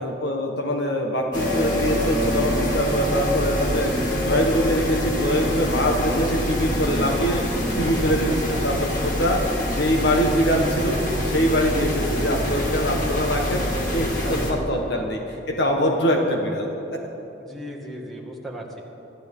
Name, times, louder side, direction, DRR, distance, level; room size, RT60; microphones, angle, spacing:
voice 1, 0.0-16.7, equal, 65° left, 1 dB, 1.5 m, -24 dB
sound 1, 1.3-14.5, equal, 45° left, 2.3 m, -25 dB
voice 2, 7.8-8.7 14.2-15.0 17.4-18.8, right 1 dB, ahead, -2 dB, 2.0 m, -37 dB
25.0 x 12.5 x 3.8 m, 3.0 s
head